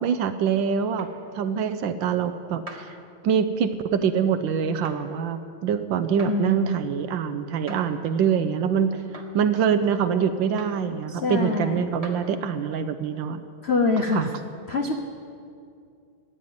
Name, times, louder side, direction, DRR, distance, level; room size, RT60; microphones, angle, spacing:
voice 1, 0.0-1.1 1.3-3.0 3.2-13.4 14.1-14.3, right 7 dB, 70° right, 10 dB, 1.3 m, -25 dB
sound 1, 1.0-1.1 2.7-2.9 4.8-5.0 6.2-6.4 7.7-7.8 9.1-9.3 10.6-10.8 12.0-12.2, right 2 dB, 20° right, 1.3 m, -40 dB
voice 2, 6.3-6.8 11.1-11.9 13.6-14.3 14.7-14.9, left 3 dB, 65° left, 4 dB, 0.6 m, -25 dB
14.0 x 8.9 x 9.4 m, 2.4 s
omnidirectional pair, 2.3 m